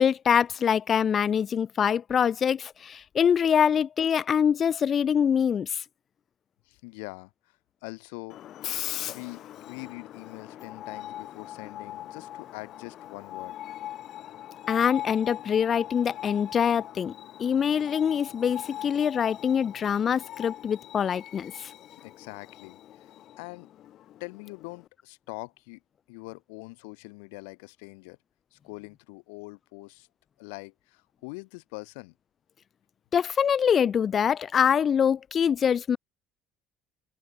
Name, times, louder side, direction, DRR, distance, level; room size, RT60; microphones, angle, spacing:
voice 1, 0.0-5.8 14.7-17.1 17.4-21.7 33.1-36.0, left 8 dB, 40° left, 0.4 m, -24 dB
voice 2, 6.7-7.3 7.8-8.4 9.1-13.6 21.9-23.1 23.4-23.7 24.2-25.8 26.1-28.2 28.5-30.1 30.4-32.1, left 31 dB, 90° left, 3.5 m, -43 dB
Screech, 8.3-24.9, left 12 dB, 60° left, 1.6 m, -41 dB
open air
supercardioid pair, 100°, 0 cm